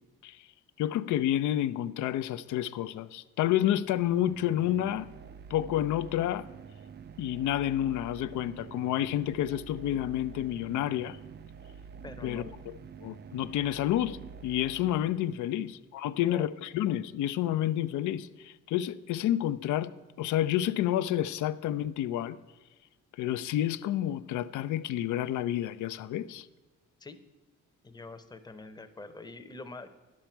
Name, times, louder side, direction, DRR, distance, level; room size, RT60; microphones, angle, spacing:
voice 1, 0.8-5.1 5.5-6.5 7.2-11.2 12.2-12.4 13.0-14.2 14.4-19.9 20.2-22.4 23.2-26.5, left 12 dB, 75° left, 0.5 m, -29 dB
sound 1, 3.9-15.7, right 6 dB, 35° right, 0.4 m, -48 dB
voice 2, 12.0-12.6 15.5-15.7 16.2-16.5 27.0-27.2 27.8-29.9, left 3 dB, 15° left, 0.7 m, -44 dB
10.5 x 7.4 x 4.4 m
cardioid pair, 90°, 30 cm